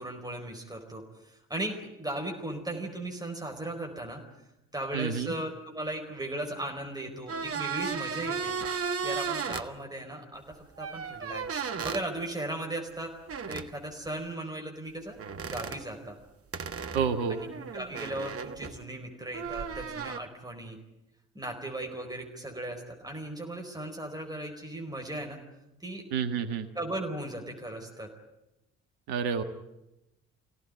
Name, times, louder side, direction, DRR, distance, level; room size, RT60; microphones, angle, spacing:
voice 1, 0.0-4.2 4.7-13.1 13.5-16.2 17.3-20.8 21.3-25.4 25.8-26.1 26.7-28.1, right 1 dB, 10° right, 1 dB, 4.5 m, -37 dB
voice 2, 4.9-5.3 16.9-17.4 26.1-26.7 29.1-29.4, right 6 dB, 65° right, 8 dB, 1.7 m, -29 dB
sound 1, 7.3-9.7 10.8-12.0 13.3-13.7 15.2-15.8 16.5-18.8 19.3-20.2, right 6 dB, 35° right, 1.4 m, -35 dB
24.0 x 17.0 x 9.7 m, 0.93 s
figure-of-eight pair, 45°, 40 cm